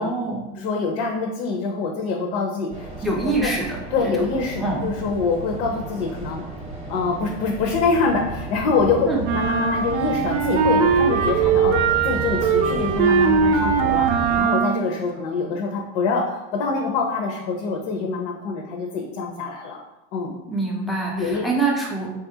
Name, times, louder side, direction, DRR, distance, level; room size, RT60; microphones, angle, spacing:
voice 1, 0.0-0.5 3.0-3.8 4.1-4.2 4.6-4.8 9.0-9.2 20.5-22.1, right 3 dB, ahead, -3 dB, 0.4 m, -24 dB
voice 2, 0.6-2.9 3.4-3.5 3.9-6.4 6.9-19.8 20.1-20.4 21.2-21.4, left 4 dB, 65° left, 0 dB, 0.6 m, -25 dB
sound 1, 2.7-14.4, right 2 dB, 20° right, 0.8 m, -32 dB
sound 2, 9.2-15.0, right 6 dB, 90° right, 0.5 m, -20 dB
3.5 x 2.4 x 2.7 m, 0.96 s
supercardioid pair, 130°, 36 cm